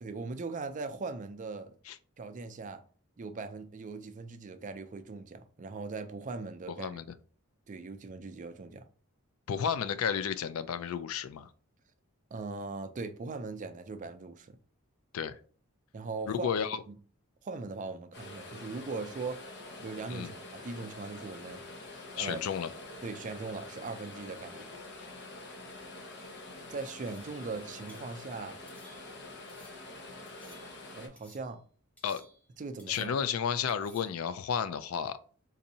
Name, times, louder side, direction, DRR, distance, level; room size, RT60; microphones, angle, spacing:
voice 1, 0.0-1.7 2.2-2.8 3.2-6.9 7.7-8.8 12.3-14.6 15.9-16.5 16.9-17.0 17.4-19.4 19.8-21.6 22.1-22.4 23.0-24.6 26.7-28.6 30.9-31.6 32.6-33.1, right 3 dB, 40° right, 0.4 m, -40 dB
voice 2, 9.5-11.5 15.1-15.4 16.3-16.8 20.1-20.3 22.2-22.7 32.0-32.2 32.9-35.2, left 7 dB, 90° left, 0.4 m, -32 dB
sound 1, 18.1-31.1, left 2 dB, 55° left, 0.7 m, -46 dB
sound 2, 27.1-27.5 27.9-28.2 28.7-29.2 29.5-29.9 30.3-30.9 31.2-31.6 32.0-32.5 32.8-33.3 33.7-34.2, equal, 5° left, 0.7 m, -59 dB
4.0 x 2.6 x 2.7 m
head